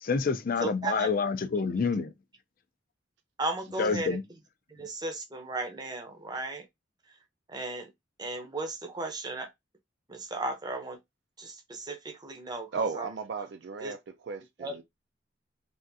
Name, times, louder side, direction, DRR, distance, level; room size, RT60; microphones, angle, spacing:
voice 1, 0.0-2.1 3.8-4.2, left 5 dB, 50° left, 0.4 m, -28 dB
voice 2, 0.6-1.1 3.4-4.2 4.7-6.7 7.5-7.9 8.2-9.5 10.1-11.0 11.4-13.1 13.8-13.9 14.6-14.8, right 2 dB, 20° right, 0.6 m, -35 dB
voice 3, 12.7-14.0 14.2-14.8, right 4 dB, 65° right, 0.4 m, -34 dB
3.5 x 2.4 x 2.6 m
head